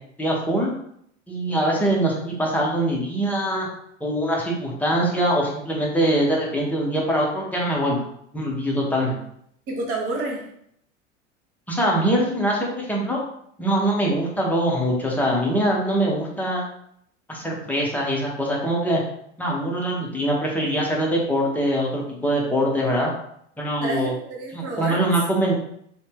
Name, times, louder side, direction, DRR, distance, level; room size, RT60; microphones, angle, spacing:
voice 1, 0.2-0.7 1.3-3.7 4.0-8.0 8.3-9.2 11.7-13.2 13.6-16.6 17.3-19.0 19.4-23.1 23.6-24.1 24.5-25.5, right 1 dB, 5° left, -3 dB, 0.5 m, -23 dB
voice 2, 9.7-10.5 23.8-25.1, right 2 dB, 50° right, -2 dB, 1.2 m, -29 dB
2.6 x 2.1 x 3.4 m, 0.71 s
figure-of-eight pair, 85°, 36 cm